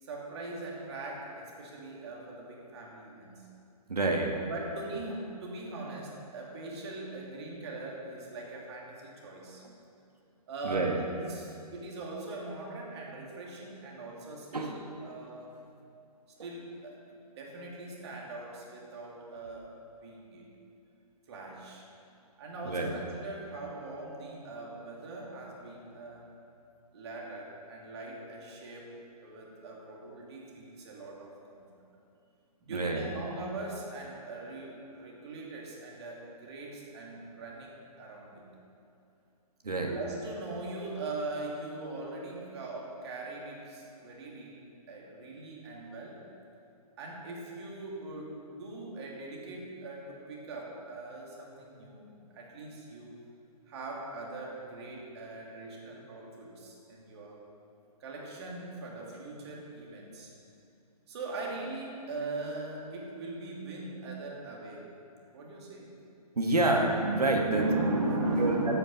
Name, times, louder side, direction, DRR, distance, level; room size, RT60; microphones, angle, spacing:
voice 1, 0.0-3.5 4.5-9.6 10.5-15.5 16.4-19.6 20.0-20.5 21.3-21.8 22.4-26.2 26.9-29.0 29.2-31.7 32.6-38.5 39.9-44.6 44.9-46.2 47.0-53.2 53.7-57.4 58.0-60.3 61.1-64.8 65.3-65.9 67.5-68.8, right 2 dB, 40° right, -2 dB, 2.9 m, -40 dB
voice 2, 3.9-4.4 10.6-11.0 14.5-14.7 22.7-22.9 32.7-33.0 39.6-39.9 66.4-67.6 68.4-68.5, right 2 dB, 70° right, 1 dB, 1.7 m, -27 dB
12.5 x 9.2 x 5.6 m, 2.7 s
figure-of-eight pair, 130°, 20 cm